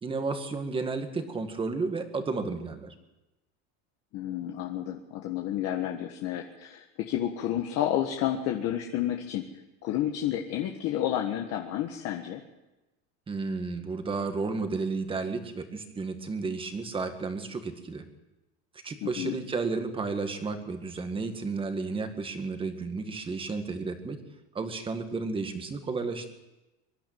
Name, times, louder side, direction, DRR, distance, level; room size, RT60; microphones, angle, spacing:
voice 1, 0.0-2.9 13.3-18.0 18.8-24.2 24.5-26.3, right 4 dB, 15° right, 7 dB, 1.9 m, -32 dB
voice 2, 4.1-9.5 9.8-12.4 19.0-19.4, left 11 dB, 45° left, 2 dB, 1.6 m, -30 dB
24.0 x 11.5 x 9.3 m, 1.0 s
cardioid pair, 155°, 33 cm